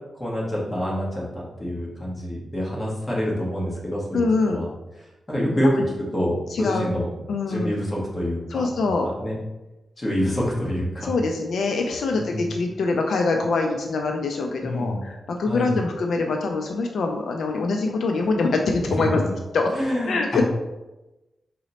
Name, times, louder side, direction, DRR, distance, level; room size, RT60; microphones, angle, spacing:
voice 1, 0.2-4.7 5.3-5.8 6.1-9.4 10.0-11.1 12.1-12.5 14.6-15.0 15.4-15.8 19.0-19.3 19.7-20.4, equal, 20° left, -5 dB, 0.9 m, -27 dB
voice 2, 4.1-4.7 5.8-5.9 6.5-6.9 7.3-7.8 8.5-9.1 11.0-19.2 19.5-19.7 20.0-20.4, left 3 dB, 70° left, 3 dB, 0.3 m, -24 dB
4.0 x 2.0 x 4.0 m, 1.0 s
wide cardioid pair, 165°, 0 cm